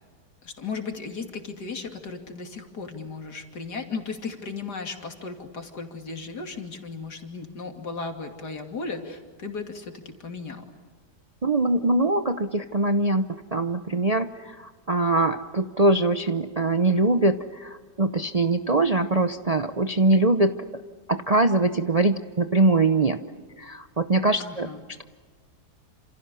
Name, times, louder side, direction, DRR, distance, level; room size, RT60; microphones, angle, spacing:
voice 1, 0.4-10.6 24.4-24.8, left 4 dB, 70° left, 4 dB, 3.2 m, -36 dB
voice 2, 11.4-13.2 13.5-20.5 21.1-23.2 23.6-24.7, right 2 dB, 35° right, 8 dB, 0.6 m, -22 dB
28.5 x 27.5 x 7.0 m, 1.5 s
omnidirectional pair, 1.8 m